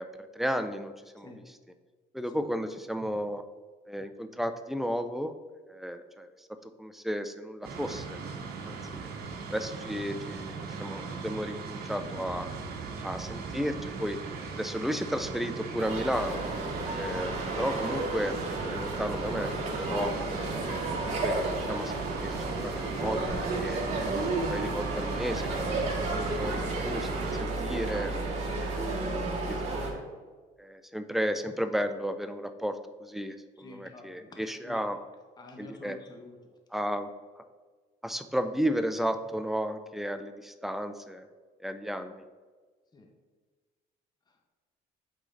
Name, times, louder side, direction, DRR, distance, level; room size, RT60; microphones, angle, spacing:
voice 1, 0.0-1.3 2.1-3.4 3.9-5.3 5.7-6.5 6.8-8.2 8.6-9.1 9.5-12.5 13.0-14.2 14.5-16.4 17.0-18.3 18.7-19.5 19.8-20.6 21.2-23.8 24.5-25.8 26.1-28.1 28.6-29.1 29.5-30.1 30.6-35.0 35.6-36.0 36.7-37.1 37.4-37.5 38.0-41.3 41.6-42.2, equal, ahead, 9 dB, 0.4 m, -33 dB
sound 1, 7.6-27.4, right 4 dB, 70° right, 1.0 m, -39 dB
voice 2, 12.1-13.0 25.7-26.0 28.4-28.6 33.6-34.8 35.4-36.4 42.9-43.1 44.3-44.5, left 2 dB, 25° left, 2 dB, 0.9 m, -50 dB
sound 2, 15.8-29.9, right 2 dB, 40° right, 1.8 m, -32 dB
8.3 x 3.8 x 3.9 m, 1.4 s
cardioid pair, 110°, 17 cm